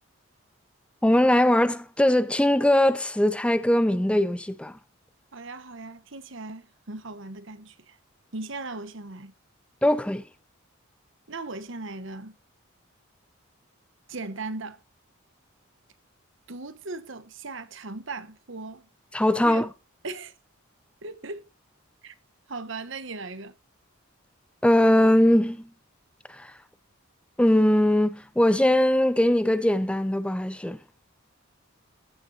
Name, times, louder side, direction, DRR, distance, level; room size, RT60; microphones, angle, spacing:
voice 1, 1.0-4.8 9.8-10.2 19.1-19.7 24.6-25.7 26.3-26.5 27.4-30.8, left 1 dB, 5° left, 0.5 m, -21 dB
voice 2, 5.3-8.0 8.3-9.3 11.3-12.4 14.1-14.8 16.5-18.9 19.4-19.7 20.0-20.3 21.0-21.5 22.0-22.1 22.5-23.5, right 3 dB, 60° right, 1.1 m, -38 dB
15.5 x 6.8 x 2.8 m
head